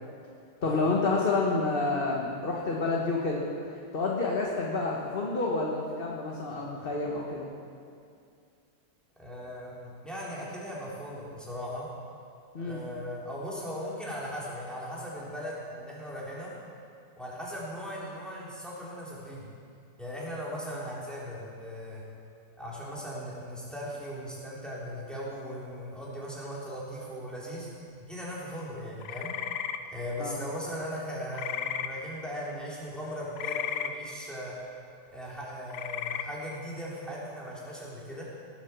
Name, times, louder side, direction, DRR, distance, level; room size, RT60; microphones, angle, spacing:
voice 1, 0.6-3.4 3.9-7.5 12.5-12.8 30.2-30.4, left 3 dB, 35° left, -2 dB, 1.3 m, -29 dB
voice 2, 9.2-11.9 12.6-16.6 17.2-19.5 20.0-22.0 22.6-27.7 28.0-29.3 29.9-34.5 35.1-38.2, equal, ahead, -6 dB, 3.3 m, -38 dB
sound 1, 29.0-29.8 31.3-31.9 33.4-33.9 35.7-36.2, left 9 dB, 75° left, 1.3 m, -33 dB
18.0 x 7.7 x 7.0 m, 2.4 s
omnidirectional pair, 2.0 m